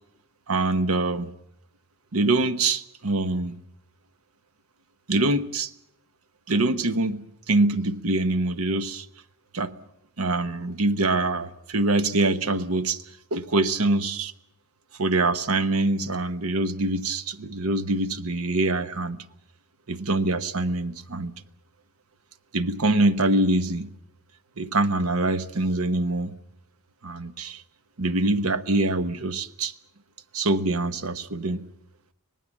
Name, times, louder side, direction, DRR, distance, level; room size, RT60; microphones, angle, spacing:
voice 1, 0.5-1.3 2.1-3.5 5.1-5.7 6.5-9.1 9.5-9.8 10.2-13.0 13.3-14.3 15.0-19.2 19.9-21.3 22.5-23.9 24.6-26.3 27.0-27.6 28.0-29.7 30.3-31.6, right 2 dB, 70° right, 1.1 m, -24 dB
25.5 x 18.5 x 7.3 m
head